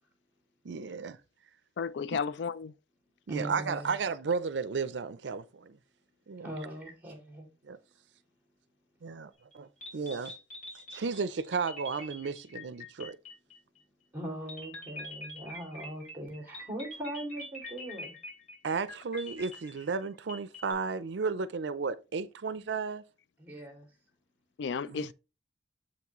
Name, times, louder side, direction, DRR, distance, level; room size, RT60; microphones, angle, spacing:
voice 1, 0.6-1.2 2.1-2.2 3.3-5.8 6.3-6.5 7.6-7.8 9.0-10.3 10.9-13.2 18.6-23.0 24.9-25.1, right 5 dB, 80° right, 0.5 m, -34 dB
voice 2, 1.8-2.7 24.6-25.1, left 5 dB, 75° left, 0.4 m, -33 dB
voice 3, 3.3-4.0 6.4-7.5 14.1-18.1 23.4-23.9, right 1 dB, 10° right, 2.6 m, -40 dB
sound 1, 9.5-9.6 9.8-13.8 14.5-20.7, left 1 dB, 45° left, 3.4 m, -45 dB
7.7 x 5.9 x 3.0 m
head